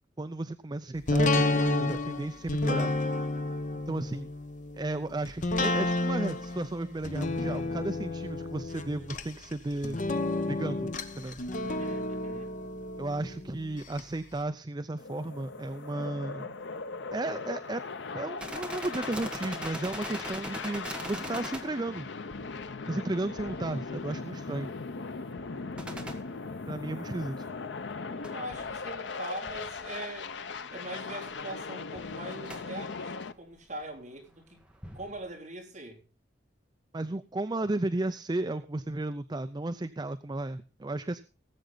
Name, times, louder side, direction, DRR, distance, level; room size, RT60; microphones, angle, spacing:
voice 1, 0.2-2.9 3.9-4.3 4.8-10.0 10.5-10.9 11.2-11.4 13.0-16.5 17.1-17.8 18.1-22.1 22.9-24.7 26.7-27.5 36.9-41.2, right 2 dB, 25° right, 0.5 m, -34 dB
sound 1, 1.1-14.0 14.4-14.5, left 2 dB, 45° left, 1.0 m, -31 dB
voice 2, 11.6-12.5 28.3-30.4 30.7-34.6 34.9-36.0, right 1 dB, 40° right, 3.7 m, -42 dB
sound 2, 15.0-33.3, left 4 dB, 90° left, 0.7 m, -39 dB
sound 3, 18.4-27.3 28.2-30.6 30.9-31.0 31.3-31.5 31.9-32.6 33.8-34.0 34.6-35.2, right 1 dB, 5° right, 1.5 m, -43 dB
19.0 x 8.0 x 3.9 m
head